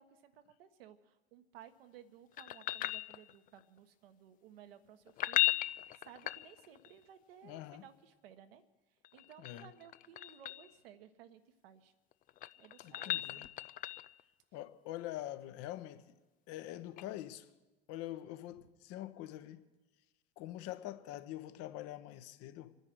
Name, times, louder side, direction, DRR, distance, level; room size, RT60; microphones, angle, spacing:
voice 1, 0.0-8.6 9.1-11.9 12.6-13.5 18.5-18.7, right 9 dB, 65° right, 1.4 m, -58 dB
sound 1, 2.4-3.6 5.1-6.9 9.0-10.7 12.1-14.2 17.0-17.1, left 15 dB, 25° left, 0.4 m, -36 dB
voice 2, 7.4-7.8 9.4-9.7 12.8-13.5 14.5-16.1 16.5-17.5 17.9-19.6 20.4-22.8, left 14 dB, 50° left, 1.2 m, -45 dB
28.0 x 9.8 x 4.7 m
figure-of-eight pair, 70°, 31 cm